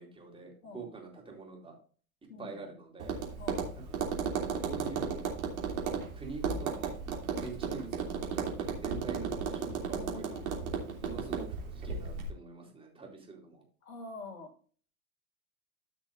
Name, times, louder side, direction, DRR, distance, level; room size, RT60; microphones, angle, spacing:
voice 1, 0.0-1.7 2.4-3.2 3.7-4.0 4.6-5.2 6.1-6.9 7.4-10.7 11.0-13.6, right 4 dB, 10° right, -1 dB, 4.0 m, -45 dB
voice 2, 2.3-2.6 3.4-3.7 7.4-7.6 9.9-10.5 11.0-11.3 13.8-14.5, left 3 dB, 70° left, 3 dB, 3.0 m, -46 dB
Tap, 3.0-12.3, right 6 dB, 65° right, 3.1 m, -35 dB
14.0 x 6.1 x 2.6 m, 0.42 s
hypercardioid pair, 100°, 44 cm